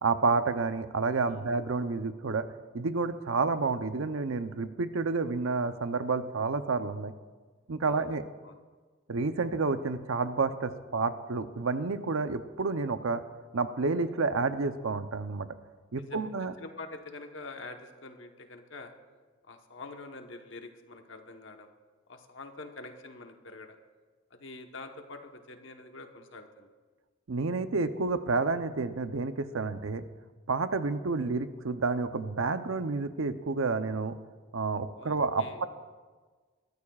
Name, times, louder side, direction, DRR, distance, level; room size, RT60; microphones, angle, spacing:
voice 1, 0.0-2.5 2.7-7.1 7.7-8.2 9.1-13.2 13.5-15.5 15.9-16.5 27.3-30.0 30.5-34.2 34.5-35.7, right 4 dB, 75° right, 10 dB, 0.7 m, -30 dB
voice 2, 7.8-8.6 16.0-18.9 19.4-21.7 22.1-23.8 24.3-26.7 35.0-35.7, left 3 dB, 60° left, 5 dB, 1.1 m, -46 dB
22.0 x 13.5 x 2.4 m, 1.4 s
head